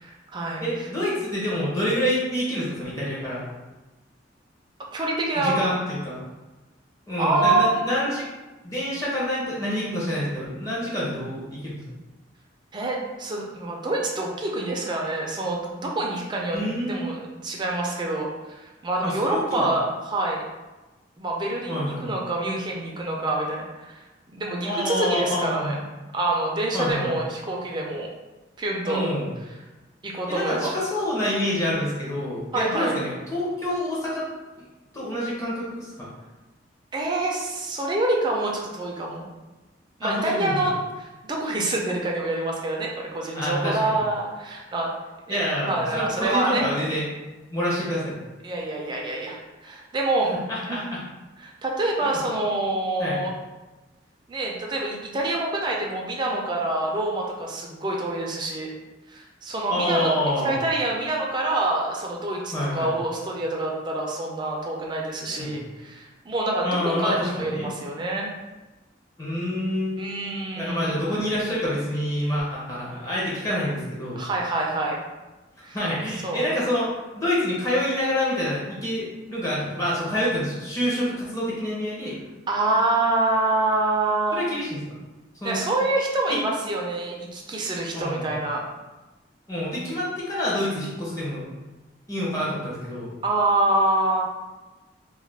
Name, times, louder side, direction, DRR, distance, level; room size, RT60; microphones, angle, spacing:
voice 1, 0.0-0.9 4.9-5.7 7.2-7.8 12.7-16.6 16.9-20.4 21.2-23.9 24.3-25.8 26.1-28.1 28.6-29.1 30.0-30.8 32.5-32.9 36.9-39.3 40.0-44.9 45.3-46.7 48.4-50.3 50.6-50.9 51.4-53.3 54.3-58.7 59.1-60.1 60.4-66.7 67.0-68.3 70.0-71.2 74.2-75.0 75.6-75.8 76.2-76.6 82.5-84.4 85.4-88.6 93.2-94.2, right 2 dB, 25° right, -1 dB, 0.4 m, -26 dB
voice 2, 0.6-3.5 5.3-6.2 7.1-8.2 8.6-11.8 16.5-17.1 19.0-19.7 21.7-22.1 24.6-25.8 26.7-27.1 28.8-29.3 30.3-34.3 34.6-34.7 34.9-36.1 40.0-40.6 43.3-43.9 45.3-47.1 47.5-48.1 50.5-51.0 52.0-52.2 53.0-53.2 59.7-60.6 62.5-62.9 65.3-65.6 66.6-67.7 69.2-70.0 70.5-74.2 75.7-82.2 84.3-84.8 85.4-85.6 86.3-86.4 87.9-88.4 89.5-91.4 92.1-93.1, left 1 dB, 15° left, -7 dB, 0.6 m, -27 dB
2.3 x 2.2 x 3.3 m, 1.1 s
head